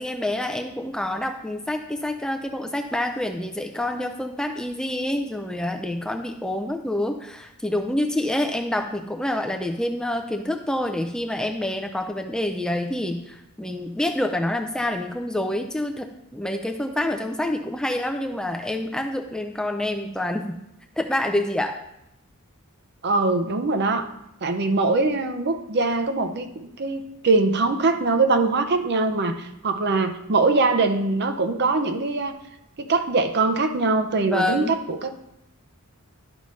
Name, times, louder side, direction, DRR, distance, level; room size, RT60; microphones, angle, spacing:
voice 1, 0.0-20.5 21.0-21.8 34.2-34.8, left 1 dB, 5° left, 4 dB, 0.4 m, -27 dB
voice 2, 23.0-24.1 24.4-32.4 32.8-35.1, right 3 dB, 50° right, 8 dB, 0.6 m, -22 dB
11.5 x 5.3 x 3.1 m, 0.83 s
head